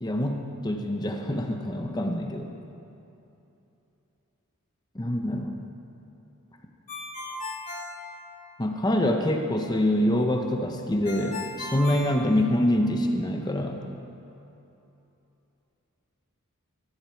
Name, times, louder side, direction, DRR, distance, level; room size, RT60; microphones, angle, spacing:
voice 1, 0.0-2.5 4.9-5.6 8.6-13.9, left 1 dB, 20° left, 3 dB, 0.8 m, -25 dB
Ringtone, 6.9-8.8 11.1-12.9, left 2 dB, 35° left, 2.2 m, -37 dB
16.0 x 14.5 x 4.5 m, 2.9 s
head